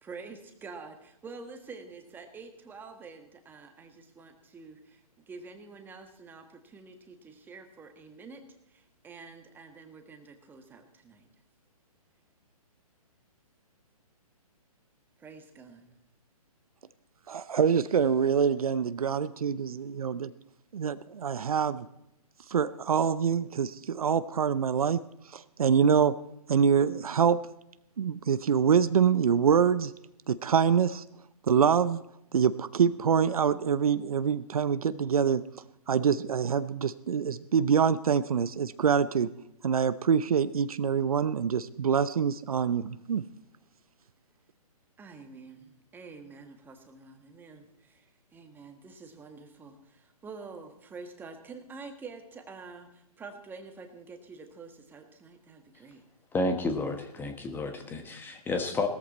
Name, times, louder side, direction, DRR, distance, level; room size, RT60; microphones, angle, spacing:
voice 1, 0.0-8.4 8.7-11.2 15.2-15.9 45.0-56.0, right 4 dB, 10° right, 5 dB, 1.6 m, -47 dB
voice 2, 17.3-20.3 20.7-21.9 22.5-25.0 25.3-26.1 26.5-27.4 28.0-29.9 30.3-31.0 31.5-32.0 32.3-35.4 35.9-39.3 39.6-43.2, right 7 dB, 65° right, 14 dB, 0.7 m, -25 dB
voice 3, 56.3-58.9, left 2 dB, 10° left, 6 dB, 1.3 m, -31 dB
18.0 x 13.5 x 4.3 m, 0.82 s
hypercardioid pair, 135°, 20 cm